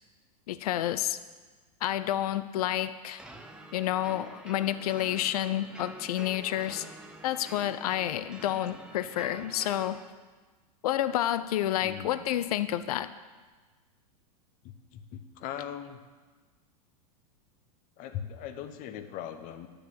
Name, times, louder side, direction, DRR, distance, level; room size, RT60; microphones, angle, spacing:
voice 1, 0.5-1.2 1.8-3.2 3.7-6.9 7.2-10.0 10.8-13.1, left 12 dB, 70° left, 13 dB, 0.6 m, -29 dB
sound 1, 3.2-10.0, right 1 dB, 5° right, 0.8 m, -48 dB
voice 2, 11.8-12.2 14.6-16.0 18.0-19.7, left 9 dB, 40° left, 9 dB, 1.1 m, -40 dB
10.5 x 6.9 x 7.6 m, 1.4 s
hypercardioid pair, 120°, 20 cm